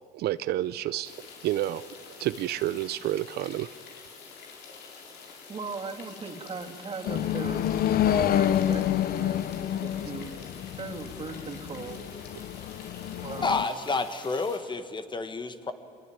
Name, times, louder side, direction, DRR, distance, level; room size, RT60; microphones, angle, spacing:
voice 1, 0.1-1.1 1.4-1.8 2.2-3.7, right 14 dB, 70° right, 14 dB, 0.6 m, -29 dB
sound 1, 1.0-14.6, left 5 dB, 80° left, 4.9 m, -47 dB
voice 2, 5.5-9.4 9.8-10.3 10.8-12.0 13.2-13.7, right 4 dB, 30° right, 2 dB, 3.0 m, -38 dB
sound 2, 7.0-13.6, left 11 dB, 60° left, 0.8 m, -28 dB
voice 3, 13.4-15.7, left 4 dB, 25° left, 10 dB, 1.4 m, -30 dB
24.5 x 22.0 x 9.1 m, 2.3 s
cardioid pair, 110°, 17 cm